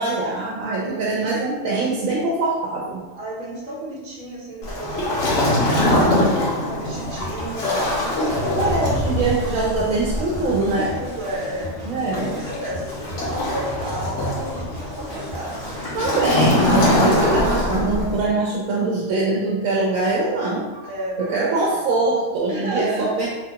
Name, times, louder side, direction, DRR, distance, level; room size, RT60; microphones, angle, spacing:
voice 1, 0.0-3.0 8.6-10.9 11.9-12.3 15.9-20.9 21.2-23.3, right 3 dB, 85° right, -4 dB, 1.0 m, -23 dB
voice 2, 0.7-1.4 3.1-6.4 6.7-8.1 10.7-11.7 12.1-16.4 20.8-21.8 22.5-23.3, right 1 dB, 55° right, -4 dB, 1.1 m, -32 dB
Waves surf, 4.6-18.3, left 1 dB, 70° left, 1.1 m, -23 dB
sound 1, 6.9-16.1, left 1 dB, 35° right, 0.8 m, -37 dB
3.6 x 2.2 x 2.8 m, 1.2 s
omnidirectional pair, 1.4 m